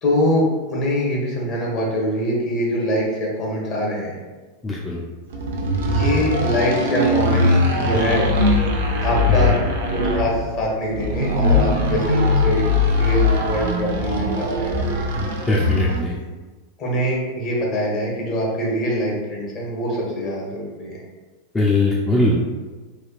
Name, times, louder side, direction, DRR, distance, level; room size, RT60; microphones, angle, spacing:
voice 1, 0.0-4.2 5.8-8.3 9.0-9.6 9.9-15.0 16.8-21.0, equal, 40° left, -3 dB, 1.1 m, -23 dB
voice 2, 4.6-5.0 9.4-9.5 15.2-16.1 21.5-22.4, left 2 dB, 15° left, -4 dB, 0.4 m, -20 dB
sound 1, 5.3-16.1, left 2 dB, 75° right, 0.5 m, -20 dB
3.2 x 2.3 x 2.4 m, 1.3 s
hypercardioid pair, 100°, 0 cm